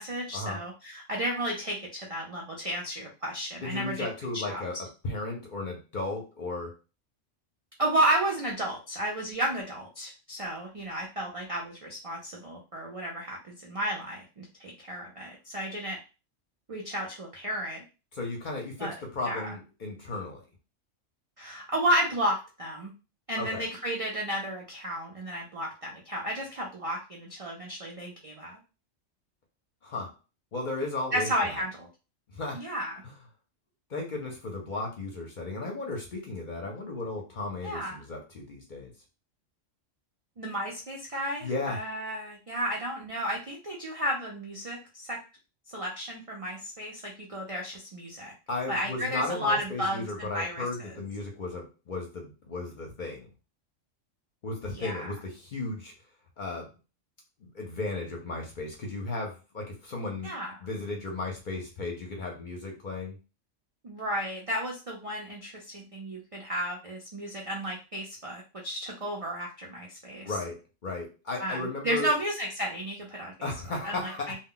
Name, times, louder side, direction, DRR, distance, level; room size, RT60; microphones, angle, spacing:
voice 1, 0.0-4.1 4.3-4.6 7.8-16.0 16.7-17.8 18.8-18.9 19.2-19.5 21.4-22.9 23.3-28.6 31.1-31.9 32.5-33.0 37.6-38.0 40.4-45.2 45.7-48.3 48.7-50.9 54.7-55.1 60.2-60.5 63.8-70.3 71.4-73.3 73.8-74.4, right 1 dB, 60° right, -2 dB, 0.3 m, -32 dB
voice 2, 3.6-6.7 18.1-20.4 23.4-23.6 29.8-30.1 30.5-31.6 32.3-32.6 33.0-33.1 33.9-38.9 41.4-41.8 48.5-53.3 54.4-55.9 56.4-56.7 57.4-60.3 60.6-63.2 70.2-72.1 73.4-74.4, left 2 dB, 50° left, 1 dB, 0.6 m, -35 dB
2.1 x 2.1 x 3.7 m, 0.31 s
omnidirectional pair, 1.3 m